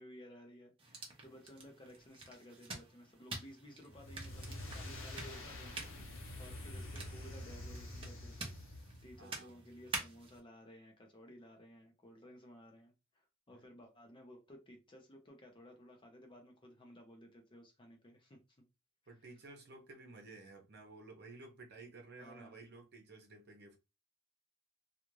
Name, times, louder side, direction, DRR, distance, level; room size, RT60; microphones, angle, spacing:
voice 1, 0.0-5.9 6.4-8.6 9.0-18.4 22.2-22.6, equal, 25° left, 0.6 m, -56 dB
sound 1, 0.8-10.4, right 3 dB, 25° right, 0.8 m, -48 dB
sound 2, 3.9-9.2, left 1 dB, 65° left, 0.8 m, -47 dB
voice 2, 9.2-9.7 13.5-13.6 19.1-23.8, right 3 dB, 55° right, 0.8 m, -54 dB
2.4 x 2.4 x 3.0 m
head